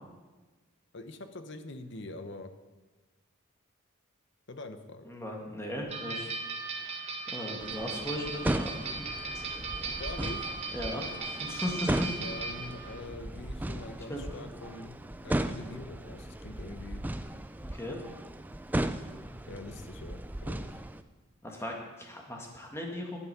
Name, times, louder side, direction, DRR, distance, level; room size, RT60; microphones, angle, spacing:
voice 1, 0.9-2.5 4.5-5.1 9.9-10.5 12.2-17.0 19.5-20.8, left 2 dB, 55° left, 9 dB, 0.9 m, -44 dB
voice 2, 5.1-6.3 7.3-8.8 9.3-9.5 10.7-12.1 14.1-14.2 17.6-18.0 21.4-23.2, left 1 dB, 10° left, 0 dB, 1.7 m, -37 dB
sound 1, 5.9-13.0, right 4 dB, 30° right, 1.5 m, -37 dB
sound 2, 7.6-21.0, right 1 dB, 10° right, 0.3 m, -36 dB
11.0 x 8.5 x 6.8 m, 1.2 s
head